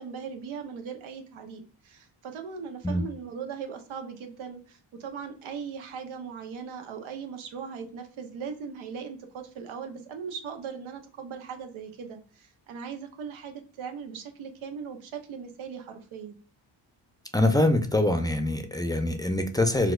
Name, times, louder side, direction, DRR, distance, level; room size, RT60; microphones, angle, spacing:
voice 1, 0.0-16.4, right 6 dB, 90° right, 5 dB, 0.8 m, -39 dB
voice 2, 17.3-19.9, left 1 dB, 10° left, 6 dB, 0.5 m, -24 dB
4.1 x 2.3 x 2.3 m, 0.39 s
cardioid pair, 70°, 47 cm